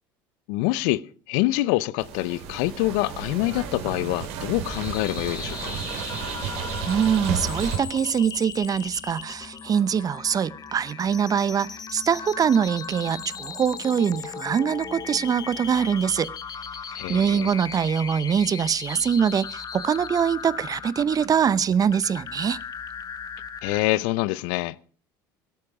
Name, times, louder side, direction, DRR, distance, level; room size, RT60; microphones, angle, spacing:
voice 1, 0.5-5.8 16.9-17.5 23.6-24.8, left 18 dB, 70° left, 0.7 m, -26 dB
sound 1, 2.0-7.8, right 7 dB, 65° right, 3.3 m, -32 dB
sound 2, 4.6-23.8, left 7 dB, 35° left, 1.3 m, -37 dB
voice 2, 6.9-16.3 17.1-22.6, right 7 dB, 35° right, 0.6 m, -23 dB
17.0 x 12.5 x 4.9 m
hypercardioid pair, 75°, 11 cm